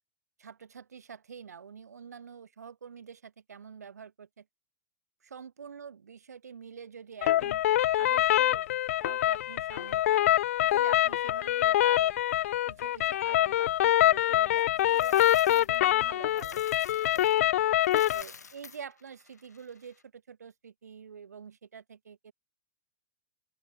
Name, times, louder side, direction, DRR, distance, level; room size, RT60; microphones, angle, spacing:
voice 1, 0.4-4.4 5.2-7.6 8.0-8.7 9.0-10.2 10.6-12.1 12.7-16.6 17.0-17.5 18.1-22.3, right 6 dB, 70° right, 2.9 m, -47 dB
sound 1, 7.2-18.2, left 13 dB, 55° left, 0.5 m, -25 dB
Coin (dropping), 14.6-17.4 17.7-20.0, left 5 dB, 75° left, 5.0 m, -50 dB
open air
figure-of-eight pair, 100°, 9 cm